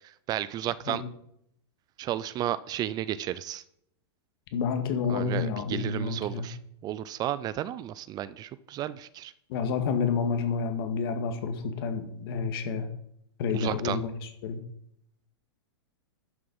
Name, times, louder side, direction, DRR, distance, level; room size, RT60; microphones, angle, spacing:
voice 1, 0.3-1.0 2.0-3.6 5.1-6.6 6.8-9.3 13.5-14.0, right 12 dB, 30° right, 17 dB, 0.4 m, -33 dB
voice 2, 4.5-6.5 9.5-12.9 13.4-14.6, left 5 dB, 60° left, 6 dB, 2.0 m, -29 dB
11.0 x 6.6 x 5.5 m, 0.73 s
hypercardioid pair, 125°, 14 cm